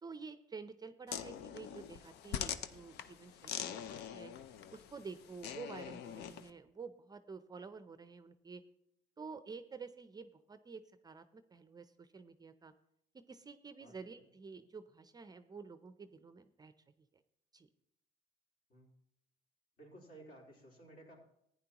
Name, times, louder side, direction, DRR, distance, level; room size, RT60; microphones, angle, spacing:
voice 1, 0.0-4.3 4.7-8.6 9.2-12.7 13.1-16.7 17.5-17.7, right 5 dB, 25° right, 11 dB, 0.5 m, -50 dB
sound 1, 1.1-6.5, left 9 dB, 75° left, 0.6 m, -44 dB
voice 2, 13.8-14.2 18.7-18.9 19.8-21.2, right 1 dB, 60° left, -2 dB, 3.7 m, -56 dB
15.0 x 9.6 x 2.9 m, 0.76 s
cardioid pair, 110°, 17 cm